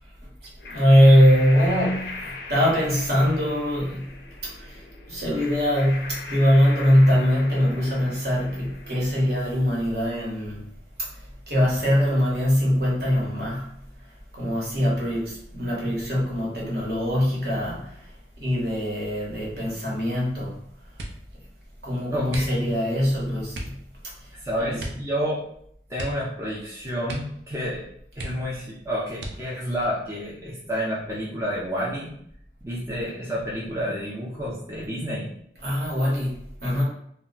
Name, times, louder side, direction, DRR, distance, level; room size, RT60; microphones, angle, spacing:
sound 1, 0.6-9.5, left 3 dB, 65° left, 0.4 m, -40 dB
voice 1, 0.7-4.1 4.4-4.8 5.1-10.7 11.0-11.1 11.5-13.7 14.3-18.1 18.4-20.6 21.8-23.7 24.6-24.8 35.6-36.8, equal, 60° right, -4 dB, 1.1 m, -22 dB
sound 2, 20.9-21.4 22.3-22.9 23.5-23.8 24.8-25.1 25.4-25.5 25.9-26.7 27.0-27.5 27.8-27.9 28.1-28.7 29.2-29.7 30.4-31.0 31.4-31.8, right 1 dB, 80° right, 0.5 m, -37 dB
voice 2, 22.1-22.6 24.3-25.4 25.9-27.8 28.2-32.1 32.6-35.3, equal, 15° right, -5 dB, 0.4 m, -29 dB
2.2 x 2.1 x 3.7 m, 0.69 s
head